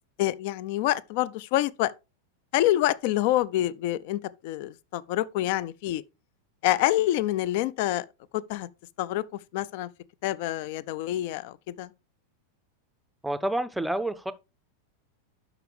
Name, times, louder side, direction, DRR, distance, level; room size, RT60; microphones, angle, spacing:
voice 1, 0.2-1.9 2.5-6.0 6.6-8.1 8.3-8.7 9.0-9.2 9.5-9.9 10.2-11.9, left 14 dB, 50° left, 0.4 m, -27 dB
voice 2, 13.2-14.3, right 1 dB, 5° right, 0.6 m, -28 dB
11.5 x 4.9 x 3.3 m
figure-of-eight pair, 90°, 0 cm